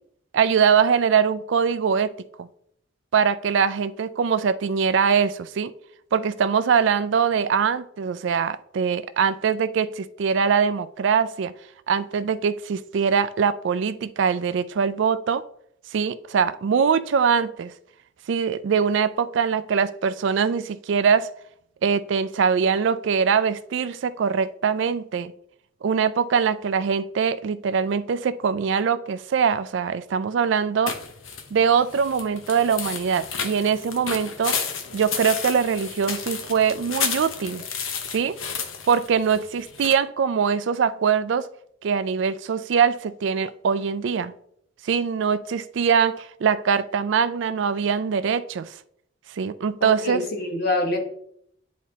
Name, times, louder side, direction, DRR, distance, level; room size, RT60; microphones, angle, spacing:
voice 1, 0.3-2.5 3.1-5.7 6.1-11.5 11.9-15.4 15.9-17.7 18.3-21.3 21.8-25.3 25.8-31.0 31.5-34.6 34.9-37.6 38.1-38.3 38.9-41.5 41.8-44.3 44.8-48.7 49.4-50.2, right 6 dB, 65° right, 0.3 m, -22 dB
sound 1, 30.9-39.9, left 6 dB, 85° left, 0.8 m, -32 dB
voice 2, 49.8-51.0, left 2 dB, 50° left, 1.2 m, -25 dB
10.0 x 4.2 x 2.8 m
head